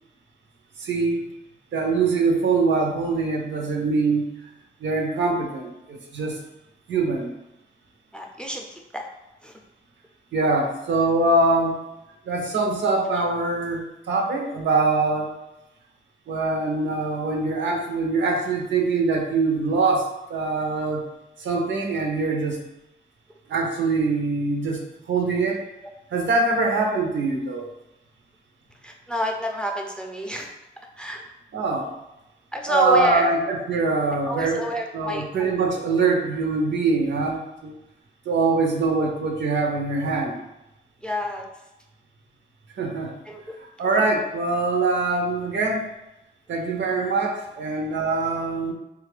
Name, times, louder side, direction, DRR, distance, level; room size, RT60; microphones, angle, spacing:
voice 1, 0.8-1.2 1.7-4.3 4.8-6.4 6.9-7.3 10.3-11.8 12.3-15.3 16.3-21.0 21.4-22.6 23.5-24.8 25.1-25.6 26.1-27.6 31.5-31.9 32.7-37.7 38.3-40.4 42.8-43.1 43.8-45.8 46.5-48.7, right 3 dB, 80° right, 1 dB, 0.7 m, -23 dB
voice 2, 8.1-8.6 8.9-9.0 9.4-9.5 28.8-30.5 31.0-31.2 32.5-33.3 34.2-35.6 41.0-41.5 43.3-43.4, equal, 5° left, 1 dB, 0.3 m, -28 dB
3.7 x 2.4 x 3.2 m, 0.92 s
wide cardioid pair, 145°, 19 cm